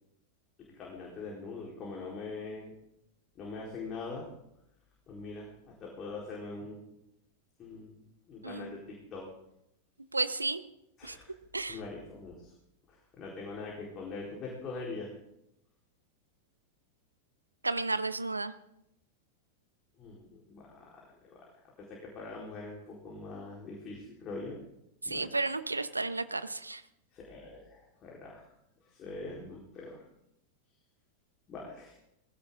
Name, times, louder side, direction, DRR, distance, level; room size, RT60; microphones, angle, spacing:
voice 1, 0.7-2.7 3.4-4.3 5.1-6.9 7.6-8.0 8.3-9.3 11.0-11.3 11.7-12.5 12.9-15.1 20.0-21.4 21.8-24.6 25.0-25.3 27.1-28.5 28.8-30.0 31.5-31.9, left 3 dB, 30° left, -3 dB, 4.3 m, -43 dB
voice 2, 8.4-8.8 10.1-10.6 11.0-11.2 11.5-11.8 17.6-18.5 25.0-26.8, right 3 dB, 80° right, 13 dB, 0.9 m, -32 dB
19.0 x 16.5 x 3.8 m, 0.80 s
figure-of-eight pair, 90°, 0 cm